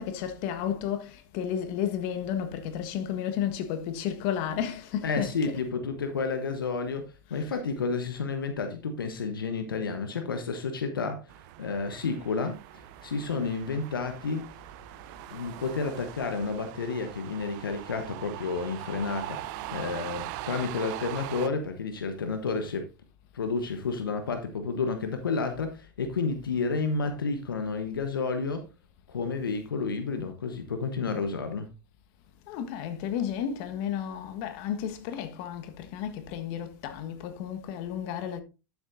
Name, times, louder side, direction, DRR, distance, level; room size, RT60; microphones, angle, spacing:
voice 1, 0.0-5.6 7.3-7.6 32.5-38.4, left 9 dB, 55° left, 1.4 m, -32 dB
voice 2, 5.0-7.0 7.3-11.2 11.6-12.6 13.0-14.5 15.3-22.8 23.3-28.6 29.1-31.7, left 4 dB, 85° left, 1.0 m, -31 dB
sound 1, 11.3-21.5, right 16 dB, 60° right, 0.5 m, -41 dB
12.0 x 7.1 x 2.6 m
hypercardioid pair, 85°, 11 cm